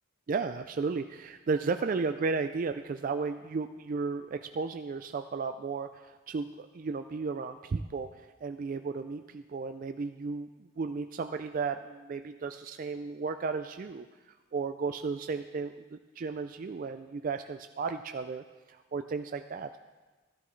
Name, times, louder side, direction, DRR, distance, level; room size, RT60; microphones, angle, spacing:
voice 1, 0.3-14.1 14.5-19.8, right 4 dB, 40° right, 8 dB, 0.3 m, -34 dB
13.0 x 12.5 x 3.2 m, 1.2 s
head